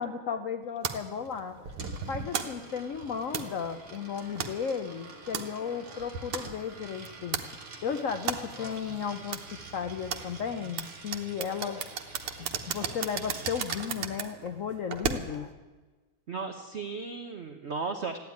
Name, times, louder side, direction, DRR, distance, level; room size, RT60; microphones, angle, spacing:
voice 1, 0.0-1.7 2.1-7.4 7.8-9.4 9.7-12.0 12.4-15.5 18.0-18.2, left 7 dB, 80° left, 8 dB, 0.7 m, -34 dB
sound 1, 0.8-15.5, right 7 dB, 80° right, 2.0 m, -37 dB
Coin (dropping), 1.3-14.0, right 3 dB, 40° right, 2.4 m, -48 dB
voice 2, 16.3-18.2, right 4 dB, 60° right, 6 dB, 0.7 m, -35 dB
14.5 x 10.5 x 9.5 m, 1.3 s
omnidirectional pair, 2.4 m